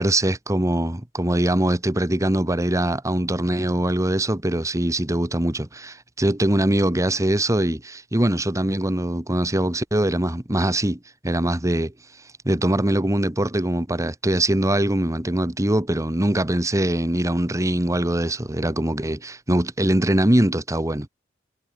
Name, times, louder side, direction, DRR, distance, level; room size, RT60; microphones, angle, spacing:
voice 1, 0.0-11.9 12.4-21.1, right 1 dB, 20° right, 1.4 m, -22 dB
head